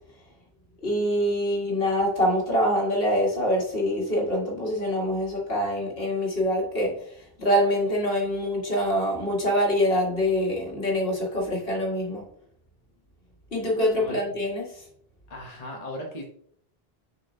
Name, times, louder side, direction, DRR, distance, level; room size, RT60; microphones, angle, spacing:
voice 1, 0.8-12.2 13.5-14.8, equal, 65° left, -2 dB, 2.2 m, -25 dB
voice 2, 15.3-16.2, left 1 dB, 40° left, -1 dB, 1.1 m, -37 dB
6.9 x 5.9 x 2.8 m, 0.65 s
omnidirectional pair, 1.0 m